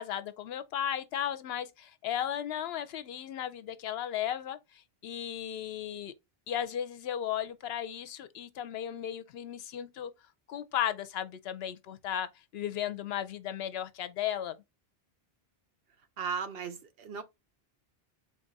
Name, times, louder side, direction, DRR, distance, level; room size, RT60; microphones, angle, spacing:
voice 1, 0.0-6.1 6.5-10.1 10.5-14.6, left 10 dB, 80° left, 0.8 m, -35 dB
voice 2, 16.2-17.2, right 6 dB, 70° right, 0.9 m, -36 dB
4.0 x 2.4 x 3.9 m
omnidirectional pair, 1.0 m